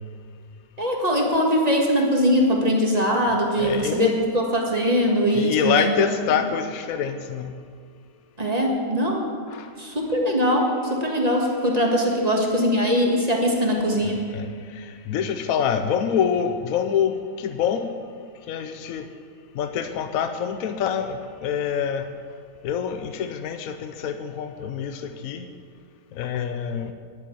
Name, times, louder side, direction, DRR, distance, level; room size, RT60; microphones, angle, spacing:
voice 1, 0.8-6.1 8.4-9.3 9.8-14.2, equal, 25° right, 0 dB, 2.0 m, -21 dB
voice 2, 3.6-4.1 5.3-7.5 9.5-9.7 14.3-14.5 14.8-17.9 18.5-19.1 19.6-22.0 22.6-25.4 26.2-26.9, left 8 dB, 70° left, 8 dB, 1.1 m, -26 dB
10.0 x 9.0 x 9.2 m, 2.1 s
omnidirectional pair, 1.6 m